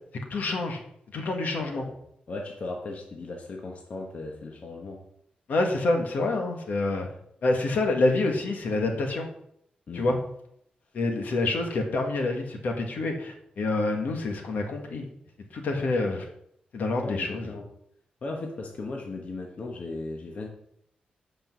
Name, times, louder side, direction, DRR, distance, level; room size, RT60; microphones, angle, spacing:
voice 1, 0.3-0.8 1.1-1.8 5.5-7.1 7.4-9.3 9.9-10.2 10.9-15.0 15.5-16.2 16.7-17.5, left 2 dB, 70° left, 3 dB, 1.7 m, -27 dB
voice 2, 1.6-2.0 2.3-5.0 9.9-10.2 15.8-15.9 17.0-17.6 18.2-20.5, left 3 dB, 50° left, 1 dB, 1.2 m, -37 dB
8.6 x 5.2 x 6.1 m, 0.73 s
wide cardioid pair, 120°, 3 cm